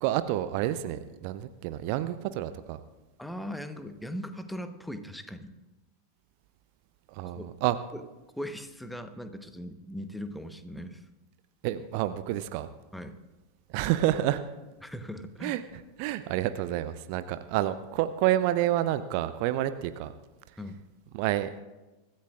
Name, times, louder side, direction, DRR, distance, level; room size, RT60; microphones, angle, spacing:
voice 1, 0.0-2.8 7.1-7.8 11.6-12.7 13.7-14.4 15.4-20.1 21.1-21.5, right 13 dB, 45° right, 12 dB, 0.6 m, -29 dB
voice 2, 3.2-5.5 7.2-7.5 7.9-8.0 8.4-11.0 12.9-13.2 14.8-15.6 20.6-20.8, equal, ahead, 8 dB, 1.1 m, -39 dB
24.5 x 14.5 x 2.5 m, 1.1 s
figure-of-eight pair, 85°, 0 cm